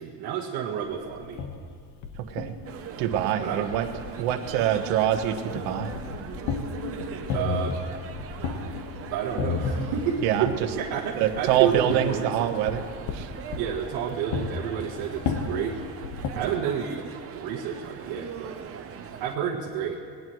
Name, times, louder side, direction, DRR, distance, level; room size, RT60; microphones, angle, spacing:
voice 1, 0.0-1.4 3.4-3.7 7.3-7.8 9.1-10.5 10.8-12.5 13.5-15.8 16.3-17.0 17.3-18.6 19.2-20.0, right 8 dB, 60° right, -3 dB, 1.4 m, -30 dB
sound 1, 1.1-16.3, left 5 dB, 65° left, 1.5 m, -34 dB
voice 2, 2.2-2.5 3.0-3.9 4.2-6.0 10.2-10.7 11.1-12.9 13.1-13.3 16.3-16.5, right 10 dB, 85° right, 7 dB, 1.3 m, -25 dB
sound 2, 2.6-19.4, right 7 dB, 30° right, 0.8 m, -40 dB
20.0 x 19.0 x 3.2 m, 2.2 s
cardioid pair, 170°, 44 cm